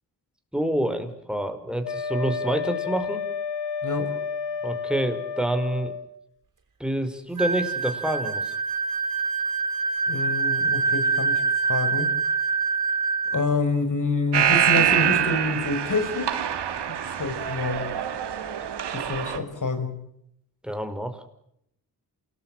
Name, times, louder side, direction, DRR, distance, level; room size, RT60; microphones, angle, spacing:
voice 1, 0.5-3.2 4.6-5.9 6.8-8.5 20.6-21.2, right 1 dB, ahead, 7 dB, 5.1 m, -27 dB
Wind instrument woodwind instrument, 1.8-6.1, left 5 dB, 90° left, 1.7 m, -31 dB
sound 1, 7.4-13.4, right 4 dB, 50° right, 5.8 m, -25 dB
voice 2, 10.1-12.1 13.3-16.3 16.9-17.9 18.9-20.0, left 3 dB, 50° left, 8 dB, 6.3 m, -27 dB
sound 2, 14.3-19.4, right 9 dB, 80° right, 2.5 m, -25 dB
28.0 x 19.5 x 7.5 m, 0.75 s
supercardioid pair, 50°, 40 cm